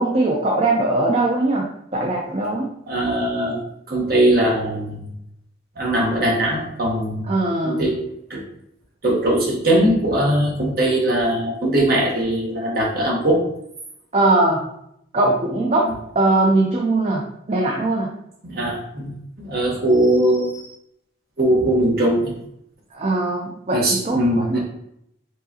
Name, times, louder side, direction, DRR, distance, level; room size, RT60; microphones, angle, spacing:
voice 1, 0.0-2.7 7.3-7.9 14.1-14.7 15.1-18.1 22.9-24.6, right 2 dB, 35° right, -1 dB, 0.5 m, -20 dB
voice 2, 2.9-3.6 3.9-5.1 5.8-7.3 7.6-8.0 8.3-8.4 9.0-13.4 15.8-15.9 18.4-19.1 19.4-20.7 21.4-22.3 23.7-24.6, right 1 dB, 50° right, -3 dB, 1.3 m, -20 dB
4.7 x 3.9 x 2.8 m, 0.76 s
head